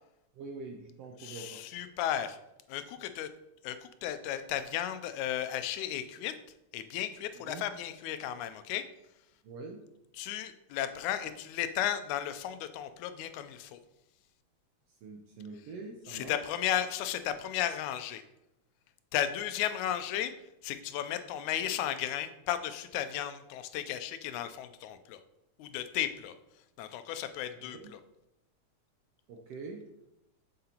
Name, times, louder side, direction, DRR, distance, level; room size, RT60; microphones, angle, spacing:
voice 1, 0.3-1.6 7.3-7.7 9.4-9.8 15.0-16.5 27.6-27.9 29.3-29.8, right 4 dB, 75° right, 2 dB, 1.4 m, -44 dB
voice 2, 1.2-2.4 2.7-3.3 3.6-6.3 6.7-8.9 10.2-13.8 16.1-18.2 19.1-20.3 20.6-25.2 25.6-26.3 26.8-28.0, left 11 dB, 85° left, 11 dB, 2.0 m, -34 dB
7.5 x 6.7 x 2.9 m, 0.89 s
omnidirectional pair, 3.4 m